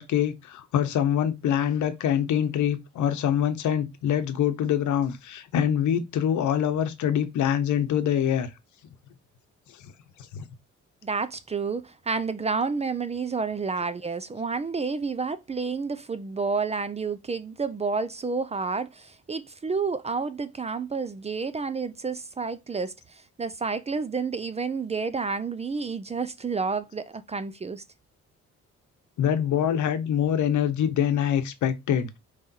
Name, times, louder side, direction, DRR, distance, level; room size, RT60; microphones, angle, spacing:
voice 1, 0.0-8.5 10.3-10.4 29.2-32.2, left 9 dB, 70° left, 0.9 m, -25 dB
voice 2, 11.0-27.8, right 4 dB, 20° right, 0.4 m, -30 dB
5.2 x 3.2 x 2.8 m
cardioid pair, 90°, 30 cm